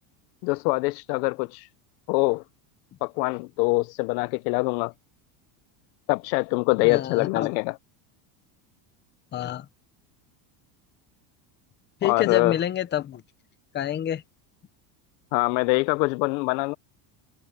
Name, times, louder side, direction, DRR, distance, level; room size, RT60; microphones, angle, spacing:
voice 1, 0.4-1.7 2.1-2.4 3.0-4.9 6.1-7.7 12.0-12.6 15.3-16.8, left 26 dB, 85° left, 0.6 m, -24 dB
voice 2, 6.8-7.5 9.3-9.7 12.0-13.2 13.7-14.2, left 11 dB, 20° left, 0.7 m, -28 dB
cardioid pair, 165°, 50 cm